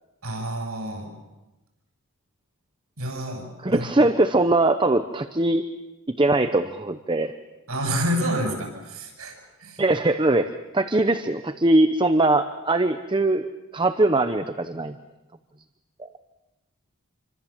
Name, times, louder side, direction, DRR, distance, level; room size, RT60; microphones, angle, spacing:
voice 1, 0.2-1.1 3.0-4.1 7.7-9.8, equal, 85° right, 3 dB, 7.6 m, -29 dB
voice 2, 3.6-5.6 6.2-7.3 9.8-14.9 16.0-16.1, right 2 dB, 20° right, 8 dB, 0.8 m, -21 dB
27.0 x 25.5 x 7.3 m, 1.1 s
head